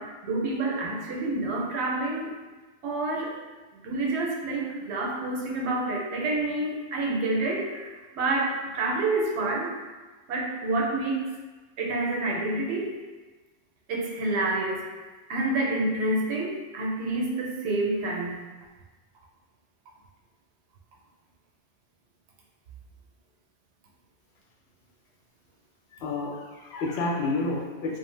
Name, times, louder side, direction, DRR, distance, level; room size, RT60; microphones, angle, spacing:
voice 1, 0.0-2.3 2.8-3.3 3.8-9.7 10.3-11.3 11.8-12.9 13.9-14.8 15.3-18.4, right 2 dB, 90° right, -1 dB, 0.8 m, -28 dB
voice 2, 25.9-28.0, left 3 dB, 75° left, -2 dB, 0.8 m, -30 dB
2.6 x 2.1 x 3.0 m, 1.3 s
omnidirectional pair, 1.1 m